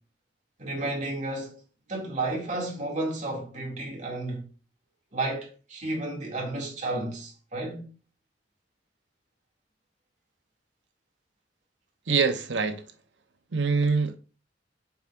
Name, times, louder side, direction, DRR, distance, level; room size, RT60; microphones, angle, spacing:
voice 1, 0.6-1.5 1.9-4.4 5.1-7.8, right 2 dB, 45° right, 2.3 m, -32 dB
voice 2, 12.1-12.8 13.5-14.2, right 5 dB, 90° right, 0.8 m, -24 dB
7.1 x 6.0 x 2.5 m
head